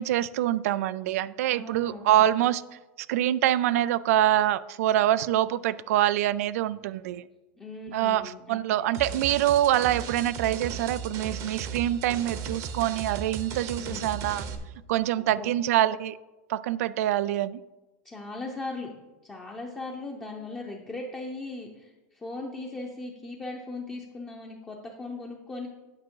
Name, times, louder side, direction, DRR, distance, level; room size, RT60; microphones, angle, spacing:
voice 1, 0.0-2.6 3.0-7.3 7.9-14.4 14.9-16.2 16.5-17.6, right 13 dB, 85° right, 0.4 m, -25 dB
voice 2, 1.5-2.3 7.6-8.9 13.8-14.1 15.2-15.5 18.0-18.9 19.2-25.7, left 2 dB, 10° left, 0.7 m, -38 dB
sound 1, 8.9-14.6, right 6 dB, 40° right, 0.9 m, -36 dB
8.6 x 6.1 x 4.6 m
supercardioid pair, 160°, 8 cm